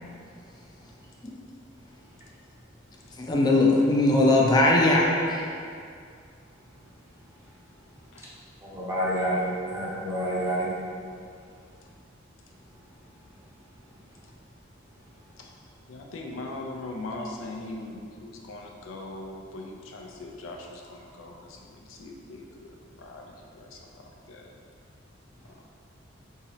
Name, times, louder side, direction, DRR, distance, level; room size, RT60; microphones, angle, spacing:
voice 1, 3.2-5.5, left 2 dB, 20° left, -2 dB, 0.4 m, -20 dB
voice 2, 8.6-10.7, equal, 15° right, -7 dB, 0.6 m, -28 dB
voice 3, 15.9-22.7 23.0-23.8 24.3-24.5, left 2 dB, 85° left, 1 dB, 0.4 m, -40 dB
3.7 x 2.8 x 3.0 m, 2.3 s
head